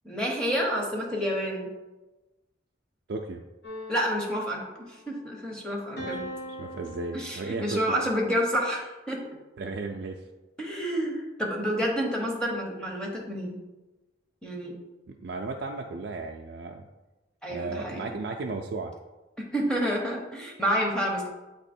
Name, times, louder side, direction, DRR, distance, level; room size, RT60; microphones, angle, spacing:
voice 1, 0.0-1.7 3.9-6.2 7.1-9.2 10.6-13.6 14.4-14.8 17.4-18.0 19.5-21.3, equal, 5° left, -2 dB, 0.9 m, -29 dB
voice 2, 3.1-3.4 6.6-8.0 9.6-10.2 15.1-16.9 17.5-18.9, right 3 dB, 60° right, 1 dB, 0.4 m, -34 dB
sound 1, 3.6-5.3 6.0-7.9, equal, 60° left, 1.4 m, -41 dB
7.7 x 3.0 x 4.3 m, 1.1 s
head